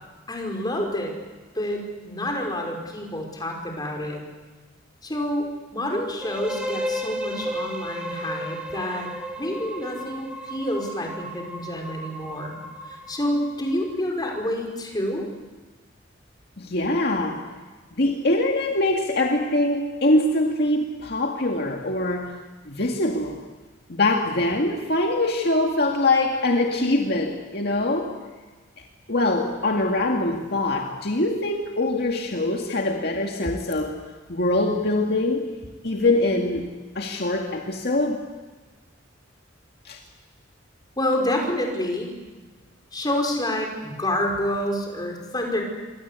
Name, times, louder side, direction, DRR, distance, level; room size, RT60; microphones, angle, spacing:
voice 1, 0.3-1.1 1.5-4.2 5.0-5.5 5.7-9.1 9.4-12.6 12.8-15.3 41.0-42.1 42.9-45.6, left 1 dB, 20° left, 2 dB, 5.3 m, -28 dB
sound 1, 6.2-14.0, equal, 5° right, 2.8 m, -34 dB
voice 2, 16.6-17.4 18.0-22.3 22.7-23.4 23.9-28.1 29.1-34.0 34.3-35.5 35.8-36.7 37.0-38.2 39.8-40.0, left 2 dB, 55° left, 1 dB, 2.1 m, -23 dB
27.0 x 23.5 x 8.4 m, 1.3 s
head